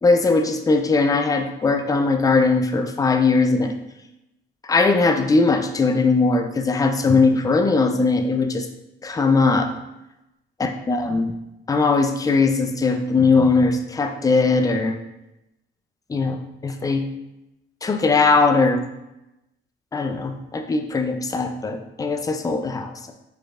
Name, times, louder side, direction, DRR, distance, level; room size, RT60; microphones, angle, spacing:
voice 1, 0.0-3.7 4.7-8.7 9.0-9.7 10.6-11.3 11.7-15.0 16.1-17.0 17.8-18.8 19.9-23.1, left 3 dB, 15° left, 6 dB, 0.4 m, -20 dB
4.8 x 4.5 x 2.4 m, 0.92 s
cardioid pair, 90°, 20 cm